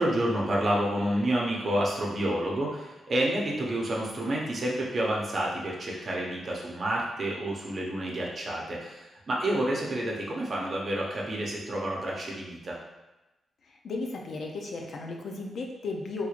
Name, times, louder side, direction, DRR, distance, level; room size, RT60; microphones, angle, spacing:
voice 1, 0.0-12.8, right 1 dB, 45° right, -3 dB, 0.8 m, -29 dB
voice 2, 13.8-16.3, left 3 dB, 65° left, 1 dB, 0.5 m, -35 dB
3.6 x 3.1 x 2.4 m, 1.0 s
cardioid pair, 105°, 0 cm